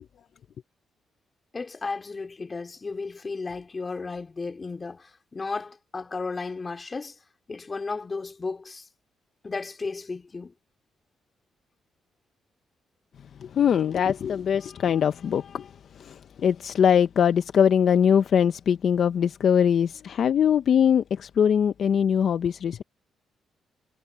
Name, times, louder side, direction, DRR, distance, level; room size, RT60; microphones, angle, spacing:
voice 1, 1.5-7.2 7.5-8.9 9.4-10.5, left 4 dB, 30° left, 3.6 m, -34 dB
voice 2, 13.4-15.7 16.0-22.8, left 8 dB, 55° left, 0.6 m, -22 dB
cardioid pair, 105°, 0 cm